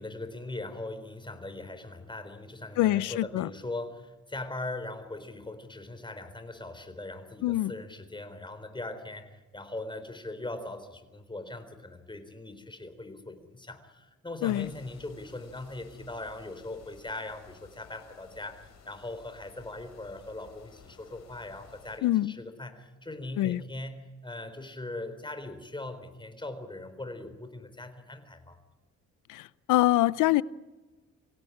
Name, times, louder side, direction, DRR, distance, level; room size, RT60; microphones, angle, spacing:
voice 1, 0.0-28.6, left 2 dB, 15° left, 9 dB, 4.1 m, -40 dB
voice 2, 2.8-3.5 7.4-7.7 14.4-14.7 22.0-22.3 23.4-23.6 29.3-30.4, left 16 dB, 85° left, 20 dB, 0.7 m, -25 dB
sound 1, 14.5-22.0, left 6 dB, 60° left, 4.1 m, -56 dB
25.5 x 16.5 x 10.0 m, 1.2 s
cardioid pair, 90°, 30 cm